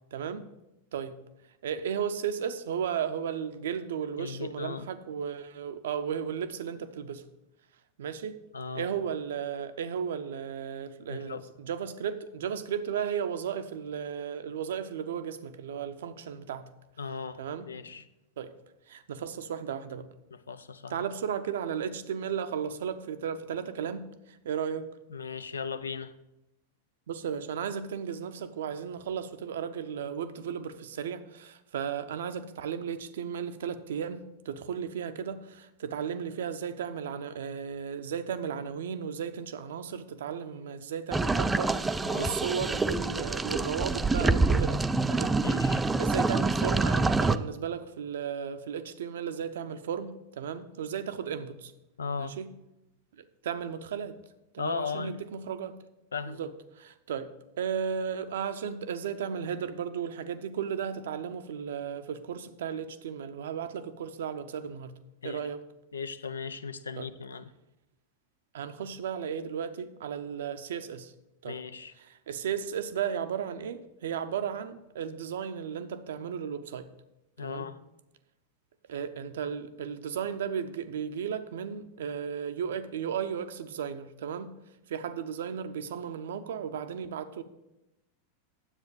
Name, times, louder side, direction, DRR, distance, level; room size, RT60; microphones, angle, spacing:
voice 1, 0.1-0.4 0.9-1.2 1.6-7.2 8.0-8.4 8.7-16.7 17.4-17.7 18.4-18.5 18.9-20.1 20.9-24.9 27.1-44.8 45.1-51.7 52.2-52.5 53.2-54.2 54.5-55.7 56.3-57.3 57.6-64.9 65.2-65.6 67.0-67.1 68.5-71.1 71.4-71.6 72.0-76.9 77.4-77.7 78.9-84.5 84.9-87.4, right 7 dB, 60° right, 11 dB, 0.6 m, -35 dB
voice 2, 4.2-4.9 8.5-8.9 11.1-11.4 17.0-18.0 20.3-21.0 25.1-26.1 42.0-42.4 45.4-45.8 52.0-52.4 54.6-55.2 56.1-56.4 65.2-65.4 65.9-67.5 71.4-71.9 77.4-77.8, left 5 dB, 70° left, 14 dB, 0.5 m, -37 dB
sound 1, 41.1-47.4, right 3 dB, 10° right, 0.4 m, -26 dB
10.0 x 8.0 x 5.1 m, 0.93 s
figure-of-eight pair, 90°, 0 cm